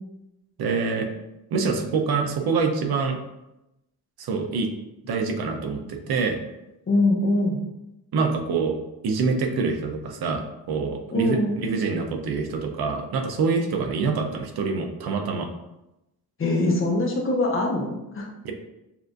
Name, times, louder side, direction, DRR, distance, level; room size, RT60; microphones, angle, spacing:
voice 1, 0.6-1.1 1.5-3.2 4.2-4.7 5.0-6.4 8.1-8.7 9.0-15.5 18.4-18.5, right 4 dB, 75° right, 4 dB, 0.7 m, -25 dB
voice 2, 6.9-7.6 11.1-11.6 16.4-18.3, left 2 dB, 35° left, 0 dB, 0.9 m, -23 dB
7.0 x 2.5 x 2.6 m, 0.92 s
cardioid pair, 110°, 38 cm